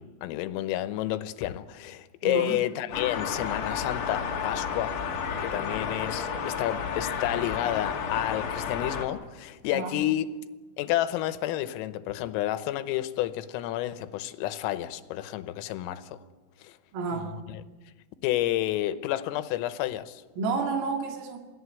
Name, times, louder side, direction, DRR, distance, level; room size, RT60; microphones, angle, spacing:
voice 1, 0.0-5.0 5.4-10.3 10.8-16.2 16.6-16.8 17.1-17.6 18.2-20.2, left 14 dB, 85° left, 3.6 m, -30 dB
voice 2, 2.2-2.6 9.7-10.0 16.9-17.3 20.4-21.4, right 4 dB, 85° right, 4.9 m, -30 dB
sound 1, 2.9-9.1, left 6 dB, 55° left, 2.6 m, -31 dB
27.5 x 17.5 x 8.2 m
omnidirectional pair, 5.8 m